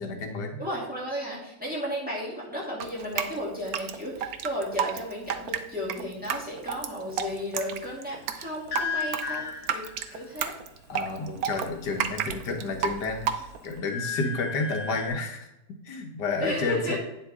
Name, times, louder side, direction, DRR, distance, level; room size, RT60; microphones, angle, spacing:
voice 1, 0.0-0.7 10.9-15.5 15.8-17.0, left 3 dB, 75° left, 3 dB, 1.6 m, -31 dB
voice 2, 0.6-10.5 16.4-17.0, equal, 5° right, -6 dB, 2.6 m, -33 dB
Drip, 2.8-13.8, right 8 dB, 65° right, 1.0 m, -32 dB
sound 1, 8.7-10.2 12.2-12.9 13.3-15.1, left 5 dB, 55° left, 1.6 m, -34 dB
9.1 x 7.2 x 3.6 m, 0.89 s
omnidirectional pair, 1.8 m